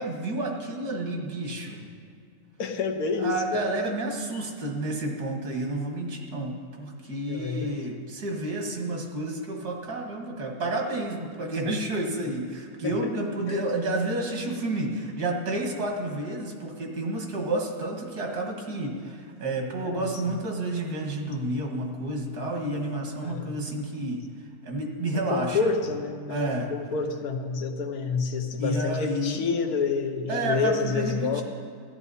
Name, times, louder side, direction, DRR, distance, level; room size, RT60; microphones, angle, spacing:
voice 1, 0.0-1.8 3.2-24.2 24.6-25.7 26.3-26.7 28.6-29.5 30.3-31.4, right 1 dB, 85° right, 1 dB, 2.1 m, -30 dB
voice 2, 2.6-3.6 7.3-7.8 12.8-13.1 13.5-13.6 19.8-20.2 23.2-23.5 25.1-31.4, left 4 dB, 75° left, 5 dB, 1.3 m, -28 dB
14.0 x 11.0 x 4.1 m, 2.3 s
omnidirectional pair, 1.6 m